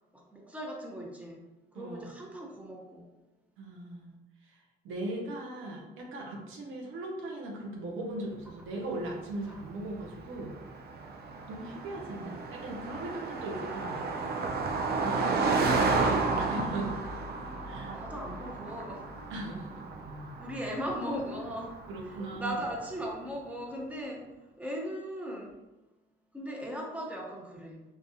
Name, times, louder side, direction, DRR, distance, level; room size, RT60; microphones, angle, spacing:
voice 1, 0.1-1.4 1.7-3.1 9.5-9.6 17.9-19.1 20.4-21.8 22.0-25.6 26.3-27.8, equal, 5° right, -1 dB, 0.8 m, -38 dB
voice 2, 3.6-4.1 4.4-10.5 11.5-14.3 15.0-17.0 17.6-17.9 19.3-19.8 21.9-22.6, right 1 dB, 85° right, 0 dB, 0.8 m, -39 dB
Car passing by, 9.1-22.8, right 3 dB, 55° right, 0.5 m, -33 dB
3.8 x 2.4 x 2.7 m, 1.0 s
cardioid pair, 90°, 20 cm